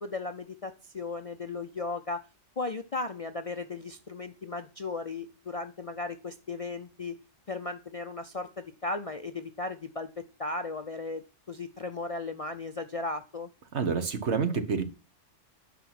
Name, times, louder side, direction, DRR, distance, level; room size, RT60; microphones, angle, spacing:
voice 1, 0.0-2.2 2.6-7.1 7.5-10.1 10.4-13.5, left 3 dB, 40° left, 8 dB, 0.5 m, -36 dB
voice 2, 13.7-14.8, right 5 dB, 65° right, 9 dB, 1.5 m, -28 dB
9.5 x 6.0 x 5.9 m, 0.32 s
omnidirectional pair, 1.3 m